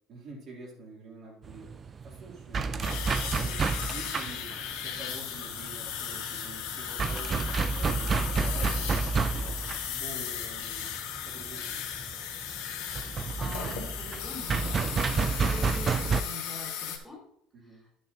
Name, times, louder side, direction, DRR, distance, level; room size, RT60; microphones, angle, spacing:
voice 1, 0.1-1.8 2.0-3.6 3.9-9.6 9.9-11.8 17.5-17.8, right 3 dB, 45° right, -3 dB, 2.7 m, -47 dB
sound 1, 1.4-16.2, right 4 dB, 25° right, 0.4 m, -30 dB
sound 2, 2.8-17.0, left 9 dB, 90° left, 1.5 m, -36 dB
voice 2, 13.0-17.2 17.6-17.9, left 1 dB, 5° left, -3 dB, 1.9 m, -44 dB
11.5 x 6.6 x 2.8 m, 0.69 s
cardioid pair, 155°, 0 cm